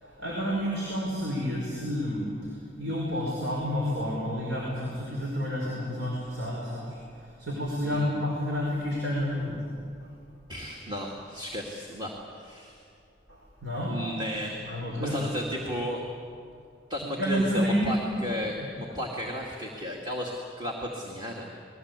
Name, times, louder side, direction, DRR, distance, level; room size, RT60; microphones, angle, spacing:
voice 1, 0.0-9.5 10.0-10.1 13.3-14.0 14.7-15.3 17.2-18.1, equal, 80° right, -3 dB, 5.2 m, -30 dB
voice 2, 10.5-12.8 13.9-14.6 14.9-16.0 16.9-20.3 20.6-21.5, equal, 25° right, -1 dB, 2.3 m, -34 dB
29.0 x 21.0 x 8.3 m, 2.5 s
head